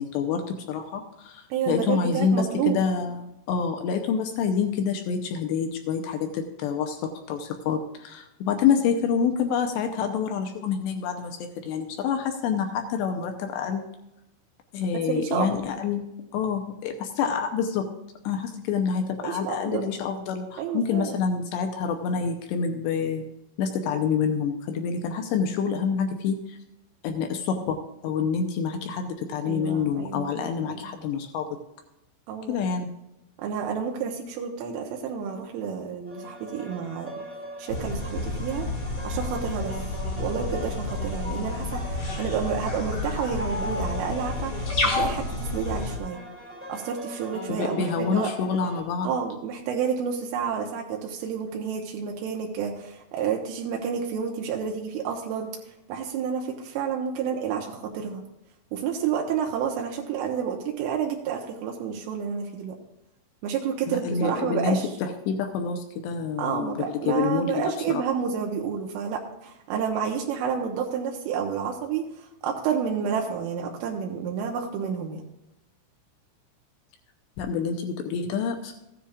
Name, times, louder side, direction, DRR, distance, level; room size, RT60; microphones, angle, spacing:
voice 1, 0.0-13.8 14.7-16.0 16.3-17.9 18.2-23.2 23.6-26.6 27.0-27.8 28.0-31.5 32.5-32.9 47.5-49.1 63.9-68.0 77.4-78.8, left 6 dB, 80° left, 5 dB, 2.6 m, -27 dB
voice 2, 1.5-2.8 14.9-15.7 19.2-19.9 20.6-21.2 29.5-30.9 32.3-32.6 33.4-37.1 37.6-38.7 39.0-39.8 40.2-45.3 45.5-46.2 46.7-48.3 49.0-55.5 55.9-58.2 58.7-62.8 63.4-64.9 66.4-75.2, right 7 dB, 85° right, 1 dB, 3.5 m, -30 dB
sound 1, 36.1-48.8, equal, 10° right, 0.8 m, -39 dB
sound 2, 37.7-46.0, left 2 dB, 45° left, 1.8 m, -30 dB
15.0 x 10.0 x 2.5 m, 0.90 s
omnidirectional pair, 5.7 m